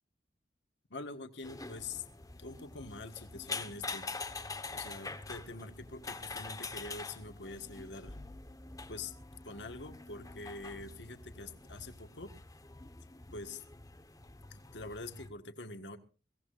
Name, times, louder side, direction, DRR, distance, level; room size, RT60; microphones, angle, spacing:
voice 1, 0.9-2.1 2.4-4.1 4.7-8.2 8.9-9.1 9.4-12.4 13.3-13.6 14.5-16.0, left 3 dB, 75° left, 7 dB, 1.7 m, -45 dB
sound 1, 1.4-15.3, left 3 dB, 20° left, 1.3 m, -45 dB
23.0 x 17.0 x 2.6 m, 0.35 s
head